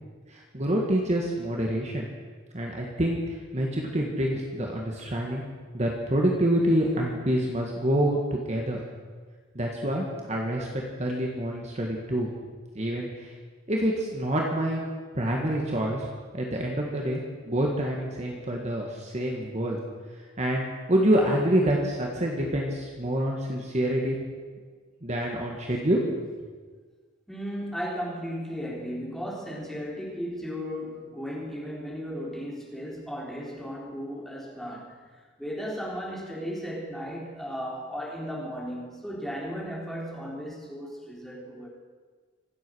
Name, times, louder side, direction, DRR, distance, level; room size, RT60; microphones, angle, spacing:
voice 1, 0.3-2.1 2.5-5.4 5.7-8.8 9.6-12.3 12.7-13.3 13.7-16.1 16.3-19.8 20.4-20.6 20.9-24.2 25.0-26.2, right 1 dB, 35° right, -1 dB, 1.9 m, -27 dB
voice 2, 27.3-35.0 35.4-41.7, equal, ahead, -5 dB, 3.8 m, -35 dB
25.5 x 8.6 x 6.4 m, 1.5 s
head